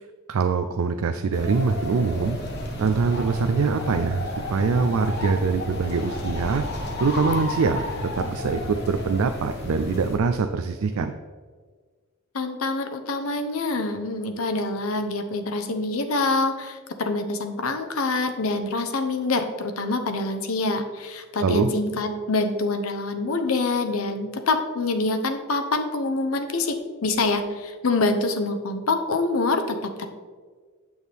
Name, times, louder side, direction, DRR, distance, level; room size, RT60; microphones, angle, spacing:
voice 1, 0.3-2.4 2.8-6.6 7.0-11.1 21.4-21.7, right 5 dB, 85° right, 7 dB, 0.4 m, -24 dB
sound 1, 1.3-10.2, left 1 dB, 50° left, 1.3 m, -31 dB
voice 2, 12.3-30.1, left 3 dB, 80° left, 7 dB, 0.8 m, -26 dB
9.1 x 6.2 x 3.5 m, 1.5 s
head